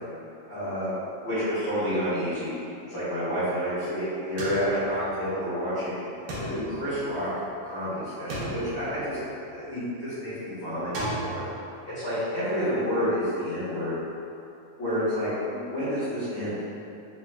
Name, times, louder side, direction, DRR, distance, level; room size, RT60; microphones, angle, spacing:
voice 1, 0.5-0.9 1.2-6.0 6.4-7.3 7.6-9.2 9.5-11.4 11.8-13.9 14.8-16.5, equal, 55° left, -17 dB, 1.4 m, -29 dB
sound 1, 4.4-5.6 6.3-7.7 8.3-9.7 10.9-11.5, right 1 dB, 75° right, 1.3 m, -36 dB
4.7 x 3.3 x 2.3 m, 2.7 s
omnidirectional pair, 3.5 m